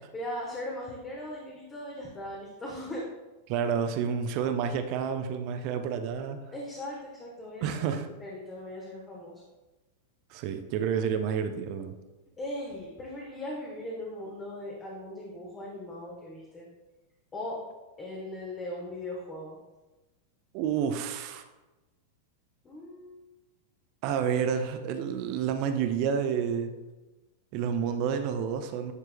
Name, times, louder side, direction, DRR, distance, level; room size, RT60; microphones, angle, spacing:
voice 1, 0.1-3.0 6.5-7.8 8.2-9.4 12.4-16.7 17.3-17.6 18.0-19.6 22.6-23.2, left 1 dB, 20° left, -3 dB, 1.1 m, -39 dB
voice 2, 3.5-6.4 7.6-8.1 10.3-11.9 20.5-21.4 24.0-26.7 27.5-28.9, right 7 dB, 45° right, 8 dB, 0.5 m, -29 dB
9.6 x 4.5 x 2.2 m, 1.1 s
figure-of-eight pair, 90°, 0 cm